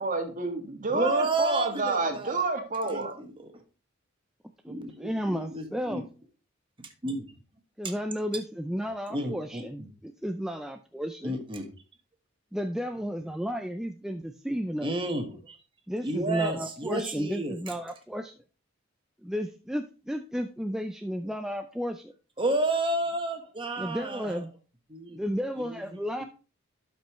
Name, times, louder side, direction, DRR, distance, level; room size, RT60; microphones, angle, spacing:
voice 1, 0.0-3.1, right 3 dB, 40° right, 4 dB, 1.6 m, -29 dB
voice 2, 0.9-2.4 2.8-3.5 4.7-6.0 6.8-7.2 9.1-9.6 11.2-11.6 14.8-15.6 16.0-17.5 22.4-24.4 24.9-25.2 25.6-25.8 26.2-26.3, right 2 dB, 25° right, 4 dB, 1.3 m, -31 dB
voice 3, 4.6-6.1 7.8-11.4 12.5-14.9 15.9-18.3 19.2-22.1 23.8-24.5 25.1-26.2, equal, 5° right, 6 dB, 0.4 m, -33 dB
12.0 x 5.3 x 3.0 m, 0.33 s
head